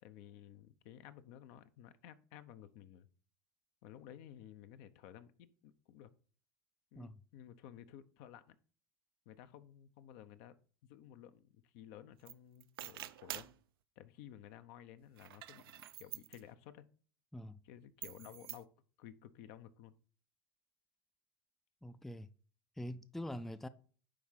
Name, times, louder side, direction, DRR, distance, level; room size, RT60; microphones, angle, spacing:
voice 1, 0.0-3.1 3.8-6.1 6.9-8.6 9.3-10.6 10.8-13.5 14.0-16.9 17.6-18.7 19.0-19.9, left 11 dB, 60° left, 0.8 m, -55 dB
sound 1, 12.3-12.4 12.6-13.6 15.1-16.4 18.0-18.6, right 14 dB, 80° right, 0.6 m, -47 dB
voice 2, 21.8-22.3 22.8-23.7, left 1 dB, ahead, 0.4 m, -44 dB
9.9 x 3.6 x 5.7 m
hypercardioid pair, 105°, 12 cm